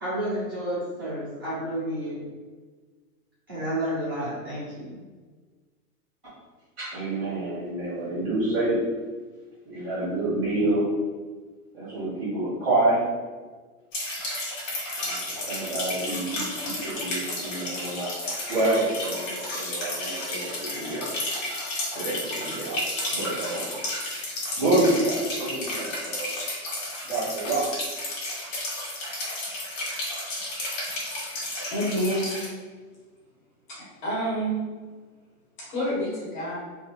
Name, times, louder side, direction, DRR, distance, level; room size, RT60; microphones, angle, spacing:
voice 1, 0.0-2.2 3.5-5.0, right 1 dB, 15° right, -12 dB, 0.5 m, -30 dB
voice 2, 6.8-8.8 9.6-10.9 11.7-13.0 15.0-21.1 21.9-23.7 24.6-26.3 27.0-27.7, right 2 dB, ahead, -12 dB, 1.0 m, -28 dB
sound 1, 13.9-32.5, left 1 dB, 55° left, 1.2 m, -32 dB
voice 3, 31.7-32.3 34.0-34.6 35.7-36.6, equal, 30° left, -7 dB, 1.2 m, -27 dB
3.2 x 2.5 x 2.9 m, 1.4 s
supercardioid pair, 180°, 46 cm